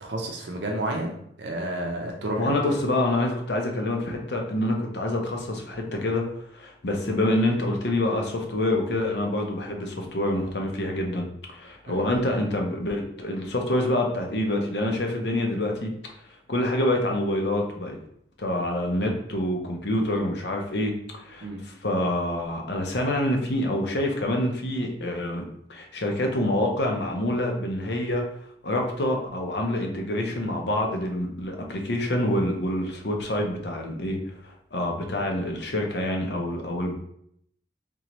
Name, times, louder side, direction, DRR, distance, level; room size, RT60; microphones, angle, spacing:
voice 1, 0.0-2.7 11.9-12.1 21.4-21.6, right 1 dB, 70° right, 1 dB, 0.6 m, -31 dB
voice 2, 2.4-6.3 6.5-11.3 11.5-15.9 16.5-18.0 18.4-25.4 25.7-28.2 28.6-34.2 34.4-36.9, left 1 dB, 70° left, 1 dB, 0.7 m, -26 dB
3.7 x 2.9 x 3.0 m, 0.71 s
head